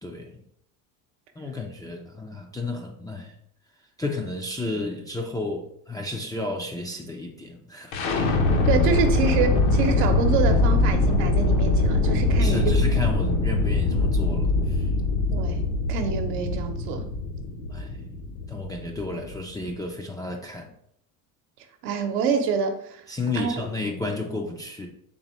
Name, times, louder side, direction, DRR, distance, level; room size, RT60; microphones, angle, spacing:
voice 1, 1.4-3.3 4.0-7.9 12.4-14.8 17.7-18.2 18.5-20.7 23.1-24.9, left 2 dB, 10° left, 0 dB, 0.3 m, -32 dB
sound 1, 7.9-19.8, left 2 dB, 75° left, 0.9 m, -23 dB
voice 2, 8.6-12.8 15.3-15.6 15.9-17.1 21.8-23.0 23.4-23.6, right 6 dB, 75° right, 5 dB, 0.8 m, -26 dB
4.0 x 3.4 x 3.0 m, 0.71 s
supercardioid pair, 90°, 44 cm